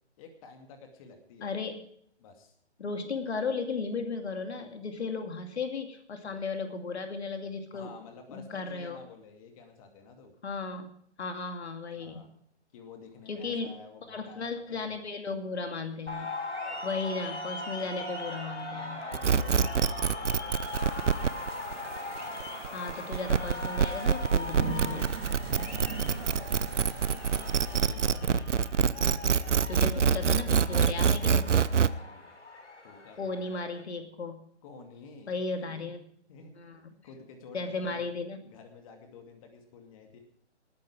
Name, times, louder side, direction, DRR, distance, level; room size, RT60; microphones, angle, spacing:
voice 1, 0.2-1.5 2.2-2.5 7.7-10.4 11.9-12.3 12.7-15.0 16.7-17.1 18.7-21.6 25.6-26.2 27.1-28.5 31.6-32.4 32.8-33.7 34.6-35.9 36.3-36.5 36.9-38.1 38.4-40.2, left 4 dB, 30° left, 4 dB, 2.4 m, -51 dB
voice 2, 1.4-1.8 2.8-7.9 8.3-9.0 10.4-10.9 11.2-12.3 13.3-13.8 14.1-16.3 16.8-19.0 22.7-25.2 28.0-28.1 29.7-31.5 33.2-34.4 35.3-36.0 36.6-36.8 37.5-38.4, left 4 dB, 65° left, 6 dB, 2.5 m, -35 dB
sound 1, 16.1-33.8, left 2 dB, 80° left, 3.8 m, -40 dB
sound 2, 19.1-31.9, right 7 dB, 80° right, 0.8 m, -25 dB
sound 3, 20.6-27.8, right 6 dB, 55° right, 3.0 m, -41 dB
19.5 x 9.6 x 4.9 m, 0.66 s
figure-of-eight pair, 145°, 35 cm